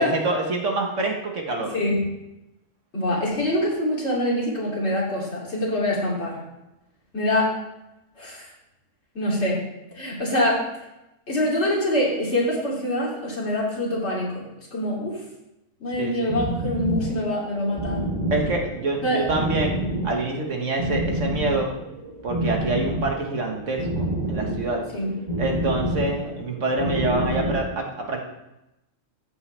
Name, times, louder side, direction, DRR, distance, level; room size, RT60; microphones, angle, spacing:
voice 1, 0.0-1.7 16.0-16.4 18.3-21.7 22.2-24.8 25.4-28.2, right 2 dB, 65° right, 1 dB, 1.7 m, -26 dB
voice 2, 1.6-2.1 2.9-6.4 7.1-7.6 8.2-8.5 9.1-9.6 9.9-10.7 11.3-15.2 15.8-18.0 19.0-19.2 24.9-25.1, left 1 dB, 55° left, -5 dB, 3.2 m, -25 dB
sound 1, 16.3-27.7, right 1 dB, 30° right, 3.3 m, -29 dB
14.0 x 8.1 x 3.4 m, 0.93 s
omnidirectional pair, 1.4 m